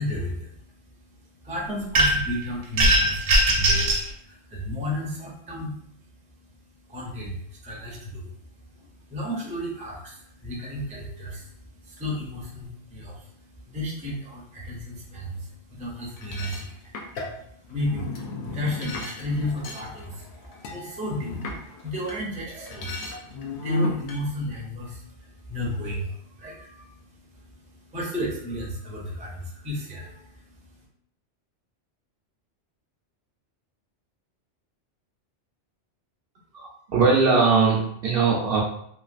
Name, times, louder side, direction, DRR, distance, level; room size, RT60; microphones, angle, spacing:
voice 1, 0.0-30.8, left 1 dB, 10° right, -3 dB, 0.4 m, -34 dB
sound 1, 1.9-2.3 2.8-4.0, right 1 dB, 85° right, 1.0 m, -19 dB
sound 2, 16.2-22.2 22.5-24.2, left 2 dB, 70° left, 0.8 m, -33 dB
voice 2, 36.5-38.6, right 4 dB, 60° right, -2 dB, 0.7 m, -20 dB
3.1 x 2.4 x 2.4 m, 0.68 s
omnidirectional pair, 1.2 m